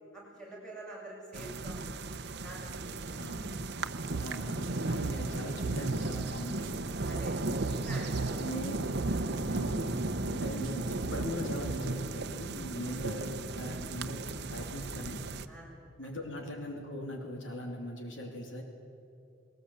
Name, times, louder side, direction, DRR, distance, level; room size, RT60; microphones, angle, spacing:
voice 1, 0.1-1.8 2.4-3.2 3.9-4.0 7.0-7.4 7.7-8.6 9.0-9.2 10.2-10.4 12.8-13.0 15.5-15.7, right 1 dB, 5° left, -5 dB, 7.9 m, -47 dB
sound 1, 1.3-15.5, right 2 dB, 60° right, 0.9 m, -35 dB
voice 2, 3.1-3.5 4.2-6.8 8.4-9.0 9.5-15.3 16.0-18.6, equal, 75° left, 2 dB, 3.0 m, -40 dB
sound 2, 4.1-12.1, right 5 dB, 75° right, 0.5 m, -39 dB
21.0 x 19.5 x 8.4 m, 2.6 s
head